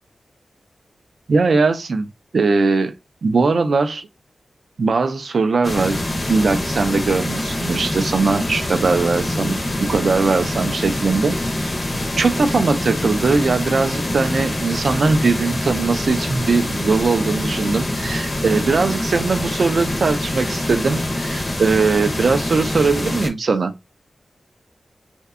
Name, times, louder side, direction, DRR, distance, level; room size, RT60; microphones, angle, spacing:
voice 1, 1.3-2.1 2.3-2.9 3.2-4.1 4.8-6.0 6.3-11.7 12.2-23.7, right 4 dB, 60° right, 0.3 m, -20 dB
sound 1, 5.6-23.3, left 1 dB, 35° left, 0.5 m, -25 dB
2.6 x 2.1 x 2.4 m
wide cardioid pair, 140°, 0 cm